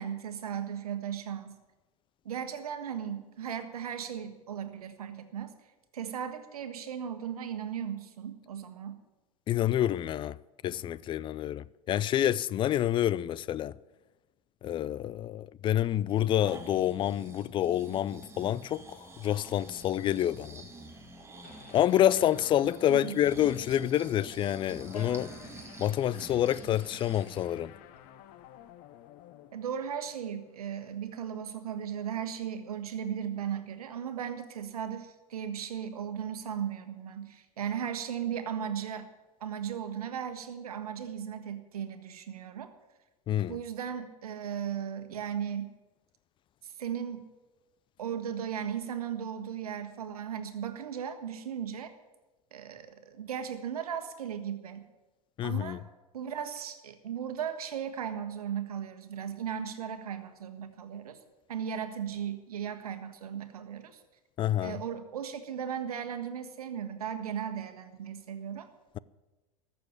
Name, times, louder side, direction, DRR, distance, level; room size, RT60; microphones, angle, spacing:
voice 1, 0.0-1.6 2.2-5.5 5.9-9.0 22.9-23.2 29.5-39.1 39.4-42.7 43.5-45.7 46.6-47.3 48.0-51.9 52.5-54.8 55.4-55.8 56.1-61.2 61.5-64.0 64.6-68.7, right 8 dB, 75° right, 1.5 m, -36 dB
voice 2, 9.5-10.4 10.6-13.8 14.6-20.6 21.7-25.3 25.8-27.7 43.3-43.6 55.4-55.8 64.4-64.8, left 11 dB, 25° left, 0.4 m, -28 dB
Breathing, 16.1-27.5 28.0-28.1, right 2 dB, 15° right, 2.1 m, -49 dB
sound 1, 19.3-28.7, left 3 dB, 85° left, 1.4 m, -55 dB
sound 2, 21.4-30.8, left 12 dB, 45° left, 1.0 m, -53 dB
14.0 x 6.9 x 10.0 m
hypercardioid pair, 90°, 19 cm